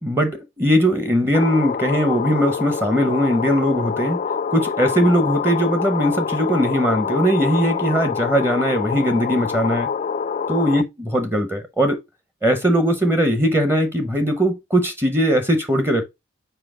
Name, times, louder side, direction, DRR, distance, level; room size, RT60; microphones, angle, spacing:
voice 1, 0.0-4.2 4.5-9.9 10.5-12.0 12.4-16.1, equal, 10° right, 0.7 m, -20 dB
sound 1, 1.3-10.8, left 6 dB, 35° left, 0.3 m, -26 dB
5.7 x 4.6 x 3.7 m
head